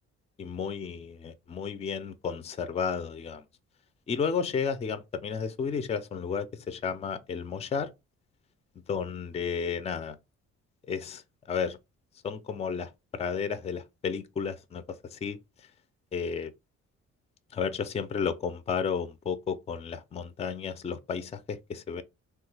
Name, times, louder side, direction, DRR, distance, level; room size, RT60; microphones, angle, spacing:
voice 1, 0.4-3.4 4.1-7.9 8.9-10.2 10.9-11.2 11.5-11.8 12.2-14.8 15.1-15.4 16.1-16.5 17.5-22.0, left 6 dB, 20° left, 0.4 m, -32 dB
3.2 x 2.2 x 3.2 m
cardioid pair, 90°, 30 cm